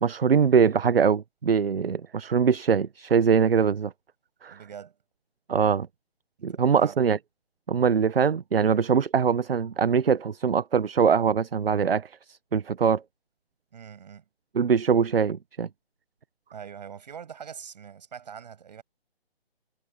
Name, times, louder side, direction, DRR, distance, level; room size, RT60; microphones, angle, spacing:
voice 1, 0.0-3.9 4.4-4.6 5.5-5.9 6.4-7.2 7.7-13.0 14.5-15.7, right 6 dB, 65° right, 0.9 m, -22 dB
voice 2, 4.5-5.0 6.5-7.0 13.7-14.2 16.5-18.8, right 7 dB, 45° right, 7.6 m, -43 dB
figure-of-eight pair, 155°, 32 cm